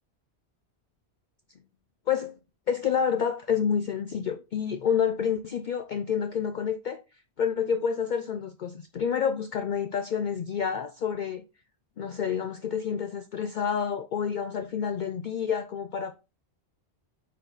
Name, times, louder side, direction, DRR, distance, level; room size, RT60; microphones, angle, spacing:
voice 1, 2.1-2.4 2.7-7.0 7.4-11.4 12.0-16.1, left 7 dB, 55° left, 0.6 m, -28 dB
8.2 x 4.3 x 4.0 m
omnidirectional pair, 1.1 m